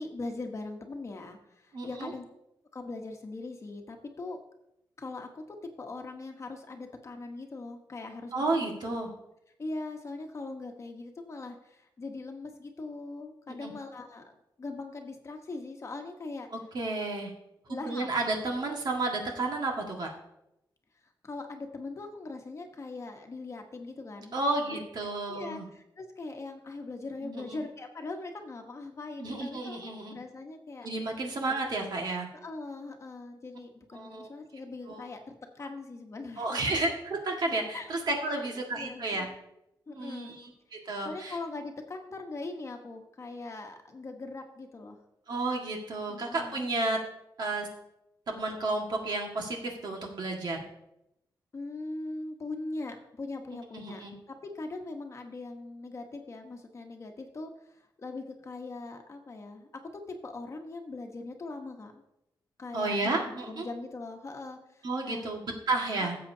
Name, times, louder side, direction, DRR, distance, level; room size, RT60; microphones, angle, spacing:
voice 1, 0.0-2.2 2.7-4.4 5.0-8.7 9.6-16.5 17.7-18.3 21.2-24.3 24.7-29.8 30.1-30.9 32.3-36.7 37.7-37.9 38.3-39.0 39.9-40.3 41.0-45.0 46.1-46.7 51.5-62.0 62.6-65.3, left 3 dB, 35° left, 3 dB, 1.1 m, -41 dB
voice 2, 1.7-2.1 8.3-9.1 13.6-13.7 16.7-17.3 17.9-20.1 24.3-25.7 27.2-27.6 29.2-30.2 30.8-32.3 33.9-34.3 34.9-35.0 36.4-39.3 39.9-41.4 45.3-47.0 47.4-47.7 48.3-50.6 53.7-54.1 62.7-63.7 64.8-66.2, right 2 dB, 55° right, 1 dB, 1.7 m, -32 dB
17.0 x 7.6 x 2.8 m, 0.85 s
wide cardioid pair, 150°, 8 cm